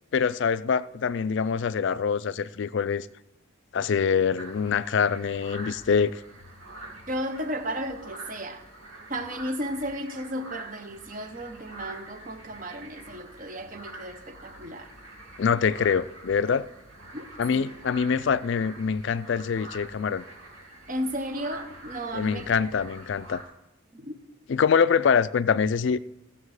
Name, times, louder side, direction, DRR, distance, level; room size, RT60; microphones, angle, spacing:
voice 1, 0.1-3.1 3.7-6.2 15.4-16.7 17.4-20.2 22.1-23.4 24.5-26.0, left 6 dB, 60° left, 0.3 m, -24 dB
sound 1, 4.4-23.4, right 1 dB, 85° right, 2.9 m, -46 dB
voice 2, 7.1-8.6 9.1-14.9 17.1-17.7 20.9-22.5 23.9-24.2, equal, 40° right, 0.9 m, -34 dB
16.0 x 7.2 x 4.8 m
head